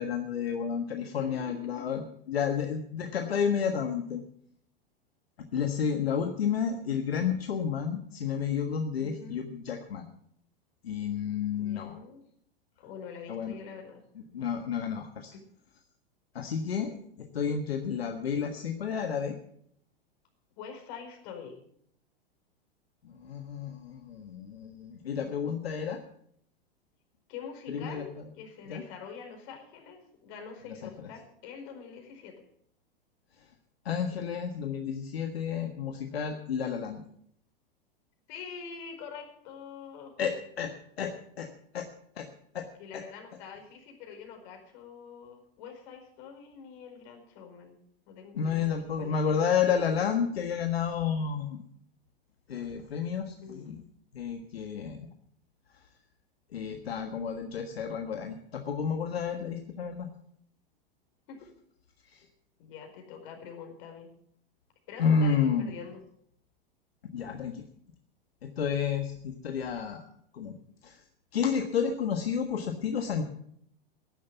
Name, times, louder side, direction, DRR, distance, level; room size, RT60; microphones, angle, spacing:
voice 1, 0.0-4.2 5.5-10.1 10.8-12.0 13.3-13.5 14.3-15.3 16.3-19.4 23.0-26.0 27.7-28.0 28.7-28.8 33.8-37.0 40.2-40.7 41.0-41.1 41.4-41.5 41.7-41.9 42.2-42.3 42.5-42.7 48.3-51.6 52.5-53.8 54.1-55.1 56.5-60.1 62.1-62.3 65.0-65.7 67.1-67.6 68.4-70.0 70.3-70.5 70.8-71.0 71.3-73.2, left 7 dB, 85° left, 5 dB, 1.5 m, -31 dB
voice 2, 1.0-1.9 9.0-9.4 11.6-12.2 12.8-14.0 15.3-15.4 20.6-21.6 27.3-32.3 38.3-40.1 42.8-47.8 48.1-49.4 53.4-53.7 59.2-59.5 61.3-61.5 62.6-64.1 64.9-66.0 71.5-71.6, left 6 dB, 55° left, 5 dB, 4.8 m, -45 dB
13.0 x 11.0 x 6.9 m, 0.68 s
hypercardioid pair, 105°, 30 cm